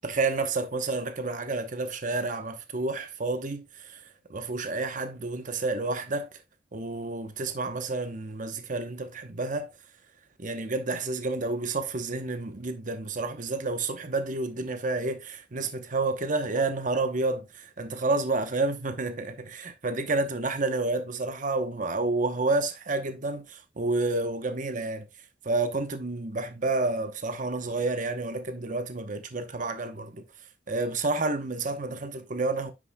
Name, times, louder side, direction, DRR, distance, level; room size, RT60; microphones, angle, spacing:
voice 1, 0.0-6.4 6.7-9.7 10.4-25.1 25.4-30.2 30.7-32.7, right 3 dB, 45° right, 0.9 m, -30 dB
9.7 x 6.2 x 2.2 m
head